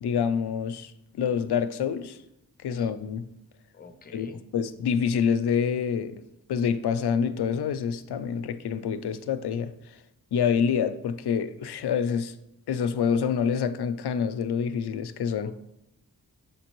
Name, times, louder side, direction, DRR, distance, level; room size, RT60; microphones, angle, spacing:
voice 1, 0.0-2.2 2.6-3.3 4.1-4.3 4.5-6.2 6.5-10.0 10.3-12.3 12.7-15.5, left 7 dB, 85° left, 12 dB, 0.5 m, -27 dB
voice 2, 3.7-4.4 15.4-15.5, left 5 dB, 25° left, 7 dB, 0.5 m, -46 dB
7.0 x 5.1 x 3.0 m, 0.84 s
wide cardioid pair, 120°, 38 cm